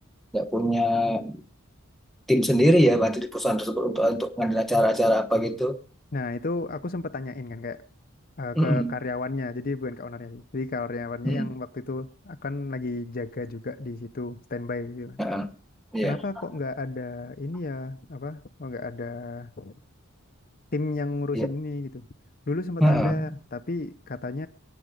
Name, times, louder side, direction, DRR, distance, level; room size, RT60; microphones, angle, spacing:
voice 1, 0.3-1.4 2.3-5.8 8.6-8.9 11.2-11.5 15.2-15.5 15.9-16.2 21.3-21.5 22.8-23.3, equal, ahead, 1.1 m, -23 dB
voice 2, 6.1-7.8 8.4-15.2 16.0-19.7 20.7-22.0 22.5-24.5, left 3 dB, 45° left, 0.7 m, -32 dB
21.0 x 8.7 x 5.2 m
head